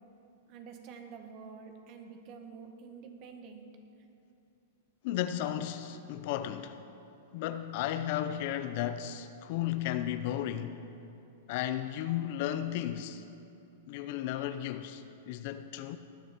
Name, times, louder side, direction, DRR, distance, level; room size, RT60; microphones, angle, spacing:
voice 1, 0.5-3.7, right 5 dB, 40° right, 1.7 m, -48 dB
voice 2, 5.0-6.8 7.3-10.8 11.5-13.2 13.9-16.0, left 11 dB, 50° left, 0.6 m, -34 dB
18.5 x 9.8 x 4.6 m
hypercardioid pair, 140°, 0 cm